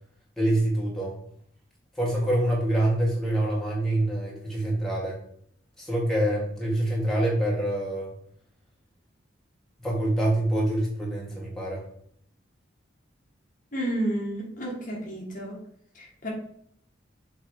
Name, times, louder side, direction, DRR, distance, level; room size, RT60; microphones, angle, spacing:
voice 1, 0.4-1.2 2.0-5.2 5.8-8.1 9.8-11.8, right 1 dB, ahead, -5 dB, 1.7 m, -26 dB
voice 2, 13.7-15.6 15.9-16.3, right 1 dB, 40° left, -2 dB, 1.7 m, -31 dB
7.3 x 3.4 x 4.7 m, 0.67 s
head